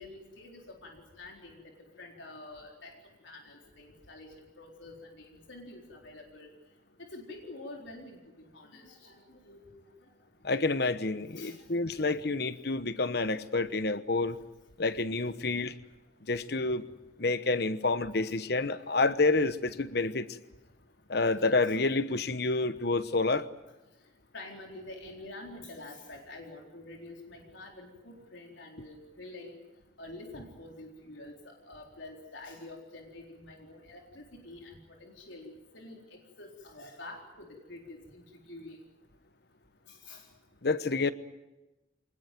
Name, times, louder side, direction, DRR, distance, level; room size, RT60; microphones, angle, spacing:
voice 1, 0.0-3.0 3.2-6.5 7.1-10.1 11.3-11.7 11.9-12.1 21.2-21.3 21.6-21.8 24.3-29.6 30.0-38.8 39.9-40.3, left 2 dB, 85° left, 1 dB, 4.2 m, -47 dB
voice 2, 10.4-14.4 14.8-15.8 16.3-16.9 17.2-20.4 21.1-23.5 40.6-41.1, left 3 dB, 60° left, 13 dB, 1.1 m, -28 dB
25.0 x 20.0 x 9.2 m, 1.0 s
head